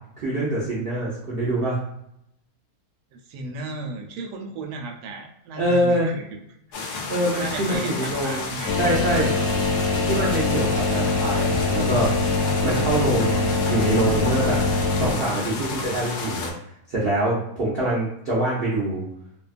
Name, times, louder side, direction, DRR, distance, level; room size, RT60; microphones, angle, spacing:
voice 1, 0.2-1.8 5.6-6.1 7.1-8.5 8.8-9.4 10.0-12.1 12.6-14.6 15.0-16.5 16.9-19.1, right 1 dB, 60° right, -7 dB, 0.6 m, -24 dB
voice 2, 3.1-6.4 6.8-7.0 7.4-9.0, right 2 dB, 80° right, 2 dB, 1.1 m, -35 dB
sound 1, 6.7-16.5, left 4 dB, 85° left, 1.1 m, -31 dB
sound 2, 8.7-15.1, left 3 dB, 65° left, 0.8 m, -23 dB
2.7 x 2.2 x 2.4 m, 0.76 s
omnidirectional pair, 1.7 m